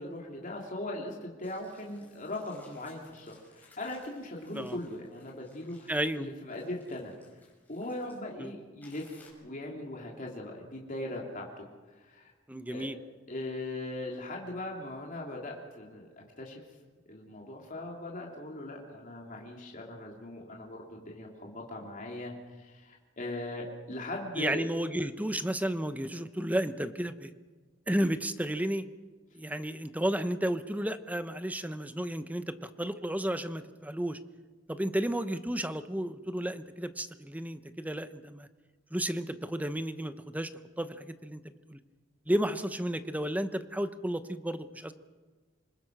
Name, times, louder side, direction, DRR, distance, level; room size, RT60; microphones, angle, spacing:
voice 1, 0.0-7.2 7.7-9.1 9.4-12.3 12.7-12.9 13.3-16.6 17.1-24.7, left 1 dB, 45° left, -1 dB, 3.1 m, -40 dB
sound 1, 1.4-8.2 8.8-9.3, left 3 dB, 10° left, 6.2 m, -61 dB
voice 2, 5.9-6.3 8.4-8.5 12.5-13.0 24.4-27.3 27.9-28.8 29.3-34.2 34.7-38.5 38.9-40.5 40.8-41.4 41.7-41.8 42.3-44.9, right 1 dB, 10° right, 11 dB, 0.9 m, -32 dB
27.0 x 20.5 x 6.1 m, 1.3 s
head